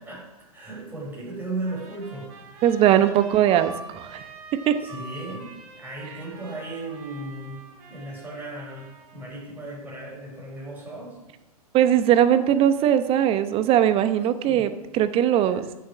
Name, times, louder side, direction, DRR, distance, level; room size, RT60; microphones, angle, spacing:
voice 1, 0.0-2.8 4.8-11.2 14.5-14.7 15.5-15.6, right 2 dB, 10° right, -5 dB, 5.8 m, -36 dB
Trumpet, 1.6-9.3, right 3 dB, 50° right, 4.0 m, -45 dB
voice 2, 2.6-4.2 4.7-4.8 11.7-15.6, right 10 dB, 30° right, 11 dB, 1.0 m, -20 dB
15.0 x 7.1 x 6.2 m, 0.96 s
figure-of-eight pair, 105°, 20 cm